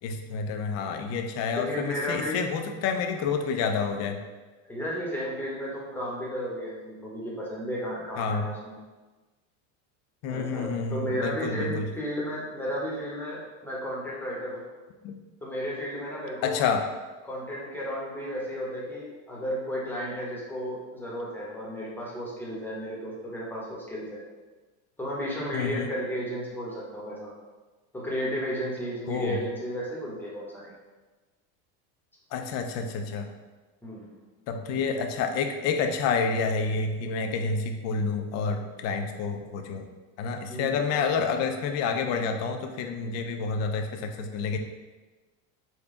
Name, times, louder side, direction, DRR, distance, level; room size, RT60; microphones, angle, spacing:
voice 1, 0.0-4.2 8.2-8.5 10.2-11.9 15.0-15.2 16.4-16.8 25.5-25.9 29.1-29.4 32.3-33.3 34.5-39.9 40.2-44.6, left 5 dB, 45° left, 5 dB, 0.5 m, -29 dB
voice 2, 1.6-2.4 4.7-8.8 10.3-14.6 15.4-16.7 17.2-24.2 25.0-27.3 27.9-30.7 33.8-34.1 40.5-40.8, equal, 5° left, -5 dB, 1.0 m, -33 dB
3.7 x 2.3 x 3.7 m, 1.3 s
supercardioid pair, 120°, 38 cm